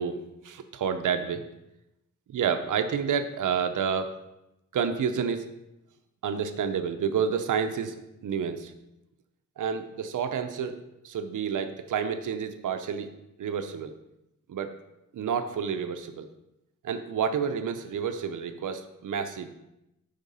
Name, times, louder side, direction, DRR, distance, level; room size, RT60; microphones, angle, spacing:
voice 1, 0.0-1.4 2.3-4.1 4.7-5.5 6.2-7.9 8.2-8.7 9.6-10.8 11.0-13.1 13.4-13.9 14.5-14.7 15.1-16.3 16.8-19.5, right 7 dB, 75° right, 8 dB, 0.7 m, -29 dB
8.8 x 3.6 x 5.4 m, 0.90 s
wide cardioid pair, 150°, 31 cm